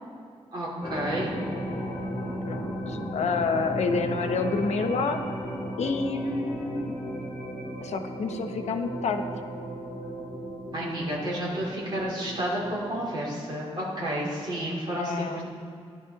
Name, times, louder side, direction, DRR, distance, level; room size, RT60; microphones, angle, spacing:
voice 1, 0.5-1.3 10.7-15.4, right 1 dB, 40° right, -6 dB, 3.4 m, -31 dB
sound 1, 0.8-12.9, right 1 dB, 15° left, 2.2 m, -35 dB
voice 2, 2.5-5.2 5.8-6.9 7.8-9.2 14.0-14.1 14.9-15.4, left 4 dB, 90° left, 7 dB, 0.8 m, -28 dB
13.0 x 11.0 x 3.9 m, 2.5 s
wide cardioid pair, 160°, 11 cm